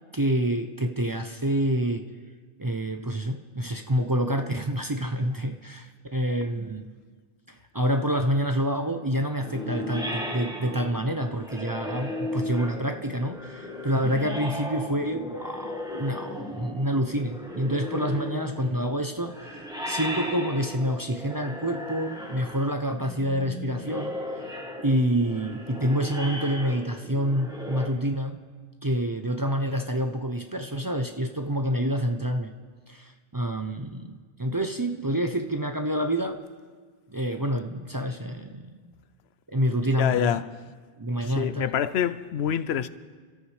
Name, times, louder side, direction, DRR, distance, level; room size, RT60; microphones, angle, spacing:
voice 1, 0.1-2.1 2.6-6.9 7.7-19.6 19.9-24.2 24.8-28.4 28.8-32.5 32.9-36.4 37.1-38.9 39.5-40.4 41.0-41.7, equal, 25° right, 0.6 m, -27 dB
voice 2, 6.4-6.7 39.9-40.5 41.2-42.9, left 9 dB, 85° left, 0.9 m, -27 dB
sound 1, 9.4-27.9, left 1 dB, 5° right, 1.5 m, -36 dB
30.0 x 13.5 x 3.3 m
omnidirectional pair, 1.0 m